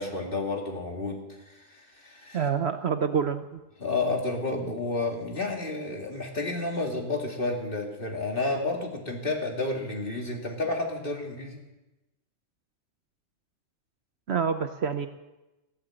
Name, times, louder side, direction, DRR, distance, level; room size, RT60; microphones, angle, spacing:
voice 1, 0.0-2.4 3.8-11.6, left 2 dB, 40° left, 1 dB, 2.7 m, -31 dB
voice 2, 2.3-3.6 14.3-15.1, right 6 dB, 55° right, 8 dB, 1.0 m, -27 dB
15.5 x 11.5 x 7.7 m, 1.0 s
omnidirectional pair, 1.4 m